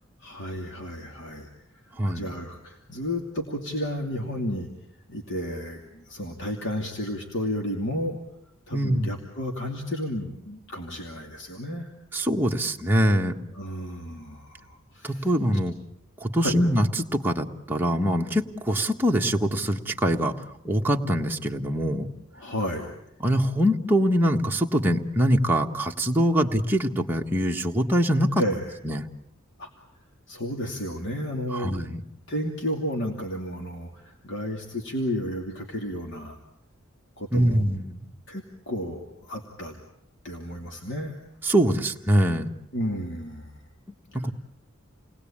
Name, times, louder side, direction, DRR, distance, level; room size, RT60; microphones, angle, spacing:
voice 1, 0.2-1.5 1.8-4.7 5.1-8.2 8.7-11.9 13.5-15.3 16.4-16.6 22.3-22.9 28.4-28.7 29.6-29.7 30.3-31.8 32.3-36.4 37.2-37.6 38.3-39.7 40.2-41.2 42.7-43.6 44.2-44.3, equal, 60° left, 1 dB, 2.8 m, -32 dB
voice 2, 2.0-2.3 8.7-9.1 12.1-13.3 15.0-15.7 16.2-20.3 20.6-22.1 23.2-28.4 28.8-29.0 31.5-32.0 37.3-38.0 41.4-42.5 44.2-44.3, equal, 10° right, 1 dB, 1.5 m, -23 dB
29.0 x 19.5 x 8.8 m, 0.83 s
head